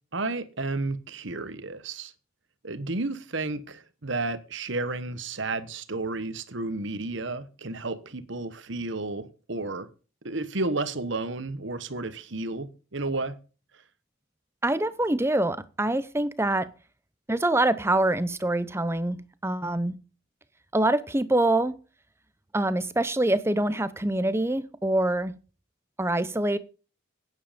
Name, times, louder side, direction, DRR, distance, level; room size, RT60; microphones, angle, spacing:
voice 1, 0.1-2.1 2.6-9.9 10.2-13.3, right 2 dB, 60° right, 1.2 m, -32 dB
voice 2, 14.6-16.7 17.3-20.0 20.7-21.7 22.5-25.3 26.0-26.6, right 1 dB, 10° right, 0.7 m, -25 dB
11.0 x 9.7 x 5.2 m
head